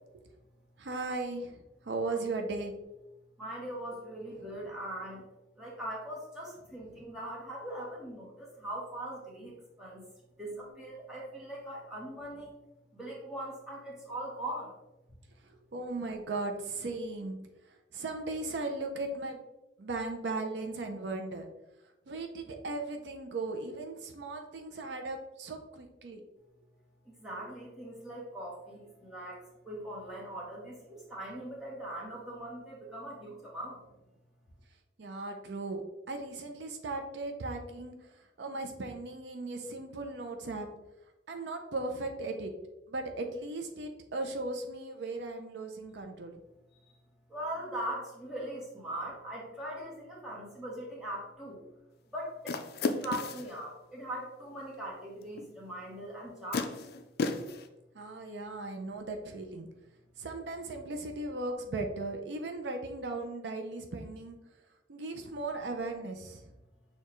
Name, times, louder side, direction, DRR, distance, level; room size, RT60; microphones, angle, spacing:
voice 1, 0.8-2.8 4.4-4.7 10.4-10.7 15.5-17.4 17.9-19.4 19.8-21.5 22.1-26.2 35.0-35.8 36.1-38.1 38.4-40.7 41.3-42.5 42.9-46.3 57.9-59.7 60.2-64.4 64.9-66.5, right 2 dB, 70° right, 4 dB, 0.5 m, -37 dB
voice 2, 3.4-5.2 5.6-10.0 10.4-12.6 12.9-14.7 27.0-33.8 47.3-51.6 52.1-52.7 53.0-56.7, right 1 dB, 5° right, -5 dB, 1.1 m, -41 dB
sound 1, 52.5-53.5 55.4-55.5 56.5-57.7, left 3 dB, 60° left, 0.4 m, -33 dB
6.5 x 2.3 x 3.0 m, 0.97 s
head